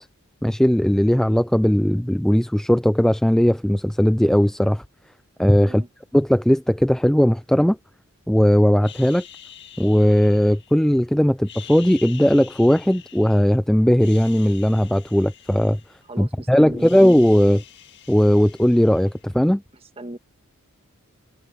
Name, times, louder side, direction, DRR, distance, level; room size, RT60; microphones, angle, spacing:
voice 1, 0.4-4.8 5.4-5.8 6.1-7.8 8.3-9.2 9.8-15.8 16.2-17.6 18.1-19.6, equal, ahead, 0.3 m, -18 dB
sound 1, 8.8-11.0 11.4-13.6 13.9-16.3 16.6-19.4, left 9 dB, 50° left, 1.8 m, -45 dB
voice 2, 16.1-16.9 19.7-20.2, right 1 dB, 25° right, 1.5 m, -38 dB
head